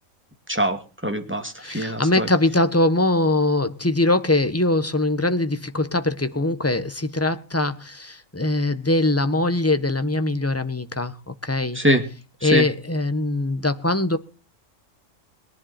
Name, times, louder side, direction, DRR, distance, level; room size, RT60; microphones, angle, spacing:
voice 1, 0.5-2.3 11.7-12.0 12.4-12.7, equal, 10° right, 6 dB, 2.4 m, -23 dB
voice 2, 1.6-11.8 12.4-14.2, left 2 dB, 10° left, 10 dB, 1.2 m, -22 dB
22.5 x 11.0 x 4.4 m, 0.36 s
omnidirectional pair, 1.4 m